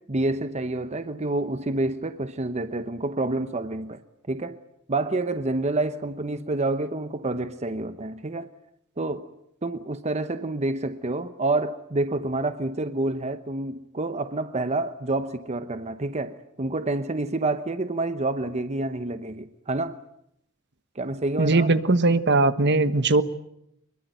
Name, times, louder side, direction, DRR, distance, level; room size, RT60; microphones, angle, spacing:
voice 1, 0.0-4.0 4.3-4.6 4.9-8.5 9.0-9.3 9.6-20.0 20.9-21.7, right 2 dB, 30° right, 0.9 m, -28 dB
voice 2, 21.4-23.2, right 2 dB, 55° right, 1.3 m, -20 dB
24.0 x 22.5 x 9.2 m
head